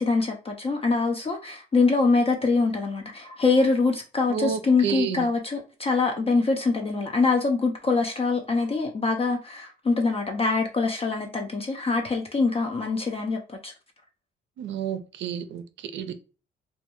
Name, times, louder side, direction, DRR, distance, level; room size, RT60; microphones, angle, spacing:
voice 1, 0.0-13.7, left 3 dB, 30° left, 0.4 m, -24 dB
voice 2, 4.3-5.3 14.6-16.2, right 8 dB, 70° right, 0.4 m, -30 dB
2.2 x 2.2 x 2.9 m
cardioid pair, 90°, 20 cm